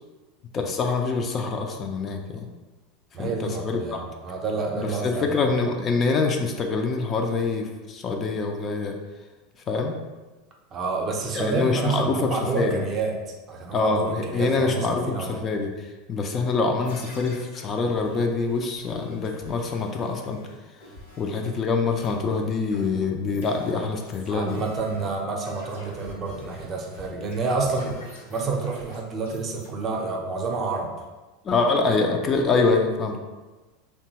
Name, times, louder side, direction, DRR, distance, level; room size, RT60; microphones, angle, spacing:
voice 1, 0.5-2.5 3.2-4.0 4.7-8.9 9.7-10.0 11.3-12.8 13.7-15.7 16.1-20.4 21.2-24.6 31.4-33.2, left 4 dB, 35° left, 3 dB, 0.4 m, -25 dB
voice 2, 3.1-5.4 10.7-13.2 13.5-15.5 24.3-28.0 28.3-30.9, right 4 dB, 40° right, 1 dB, 0.6 m, -29 dB
sound 1, 16.8-21.6 21.9-29.7, left 1 dB, 80° left, 1.0 m, -46 dB
2.8 x 2.2 x 2.8 m, 1.2 s
hypercardioid pair, 90°, 0 cm